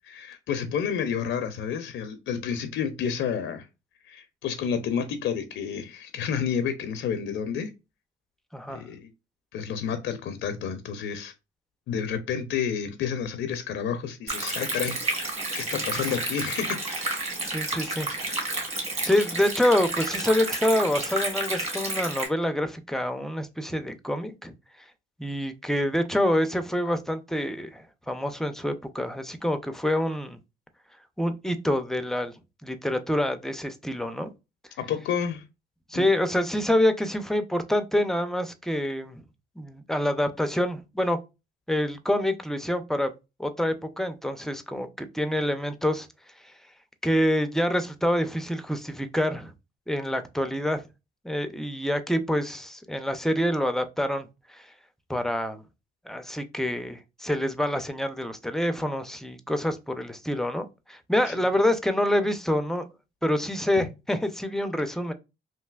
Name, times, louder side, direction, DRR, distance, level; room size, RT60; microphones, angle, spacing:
voice 1, 0.1-3.7 4.0-7.7 8.7-9.1 9.5-11.3 11.9-17.1 34.8-35.4 35.9-36.1 61.3-61.4 63.8-63.9, left 7 dB, 75° left, 0.5 m, -30 dB
Stream, 14.3-22.3, right 2 dB, 35° right, 1.7 m, -31 dB
voice 2, 17.4-18.1 19.0-24.5 25.2-30.4 31.2-32.3 32.6-34.3 35.9-39.2 39.6-41.2 41.7-43.1 43.4-46.1 47.0-49.5 49.9-50.8 51.2-54.7 55.1-55.6 56.1-62.9 63.2-65.1, left 1 dB, ahead, 0.4 m, -26 dB
3.2 x 2.7 x 2.2 m
cardioid pair, 100°, 20 cm